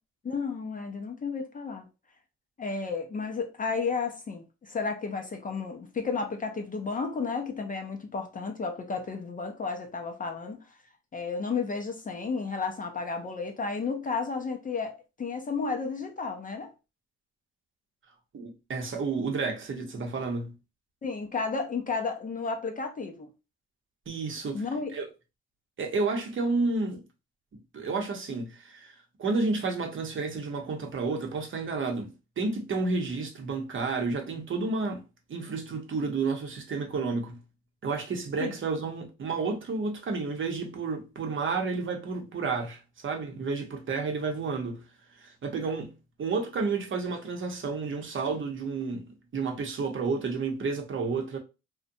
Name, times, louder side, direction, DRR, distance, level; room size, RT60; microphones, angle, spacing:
voice 1, 0.2-1.9 2.6-10.8 11.1-16.7 21.0-23.3 24.5-24.9 38.4-38.5, left 4 dB, 30° left, 0.4 m, -32 dB
voice 2, 18.3-20.5 24.1-24.6 24.9-25.1 25.8-27.0 27.7-37.4 37.8-44.8 45.2-45.9 46.2-51.4, right 4 dB, 40° right, 0.7 m, -31 dB
2.6 x 2.1 x 2.5 m
cardioid pair, 90°, 30 cm